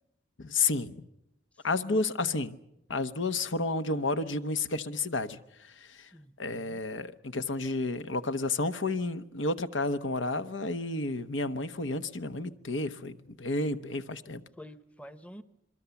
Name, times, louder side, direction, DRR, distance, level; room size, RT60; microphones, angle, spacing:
voice 1, 0.4-1.1 1.6-2.6 2.9-6.1 6.4-14.4, left 3 dB, 85° left, 1.0 m, -31 dB
voice 2, 1.6-2.0 6.1-6.8 14.6-15.4, equal, 5° left, 0.8 m, -49 dB
27.0 x 22.0 x 7.0 m
head